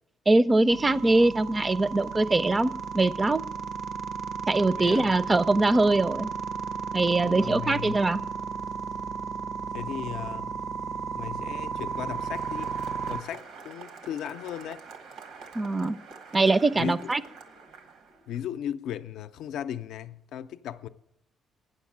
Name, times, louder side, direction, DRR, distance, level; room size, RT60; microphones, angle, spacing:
voice 1, 0.3-3.4 4.5-6.3 6.9-8.2 15.5-16.0 16.3-17.2, right 2 dB, 25° right, 0.4 m, -22 dB
sound 1, 0.7-13.2, right 6 dB, 70° right, 0.6 m, -34 dB
voice 2, 4.8-5.2 7.2-8.1 9.7-10.5 11.2-12.7 13.1-14.8 16.7-17.0 18.3-20.9, left 10 dB, 85° left, 0.4 m, -36 dB
Applause, 11.5-18.4, right 5 dB, 85° right, 1.2 m, -47 dB
9.2 x 6.6 x 8.5 m
cardioid pair, 90°, 0 cm